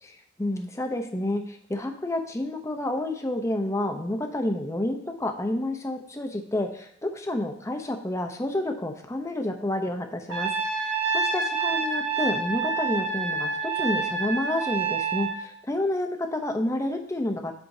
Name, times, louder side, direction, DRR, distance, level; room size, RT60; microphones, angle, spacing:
voice 1, 0.0-17.5, left 1 dB, 15° left, 5 dB, 0.6 m, -29 dB
Trumpet, 10.3-15.4, right 4 dB, 85° right, 1.6 m, -27 dB
7.8 x 7.0 x 2.7 m, 0.67 s
head